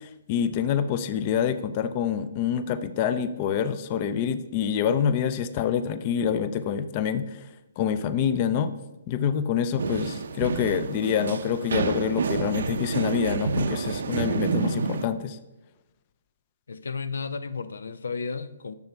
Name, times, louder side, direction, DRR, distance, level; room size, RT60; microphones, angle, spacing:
voice 1, 0.0-7.4 7.8-8.7 9.1-15.4, left 8 dB, 30° left, 0.5 m, -26 dB
sound 1, 9.8-15.1, right 5 dB, 70° right, 0.6 m, -28 dB
voice 2, 16.7-18.7, left 5 dB, 85° left, 0.6 m, -33 dB
10.5 x 6.9 x 4.6 m
hypercardioid pair, 160°, 0 cm